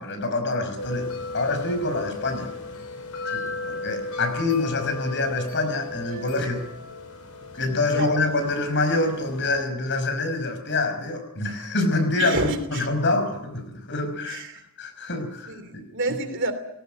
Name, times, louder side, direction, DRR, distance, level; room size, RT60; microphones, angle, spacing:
voice 1, 0.0-2.5 3.3-6.7 7.6-14.4 14.8-15.9, left 2 dB, 55° left, 5.4 m, -26 dB
sound 1, 0.8-9.6, left 3 dB, 85° left, 3.7 m, -36 dB
voice 2, 12.2-12.9 14.3-14.6 15.5-16.5, right 2 dB, 60° right, 3.0 m, -29 dB
20.5 x 18.0 x 9.2 m
head